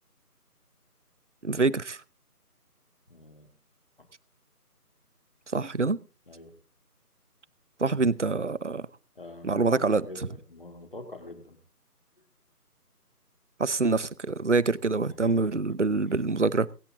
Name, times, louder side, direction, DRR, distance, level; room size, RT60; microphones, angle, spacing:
voice 1, 1.4-2.0 5.5-6.0 7.8-8.9 9.4-10.0 13.6-16.7, right 3 dB, 50° right, 0.7 m, -25 dB
voice 2, 3.1-3.5 6.3-6.6 9.2-11.6 15.1-15.8, left 2 dB, 35° left, 2.5 m, -44 dB
24.5 x 8.2 x 3.8 m
figure-of-eight pair, 170°, 47 cm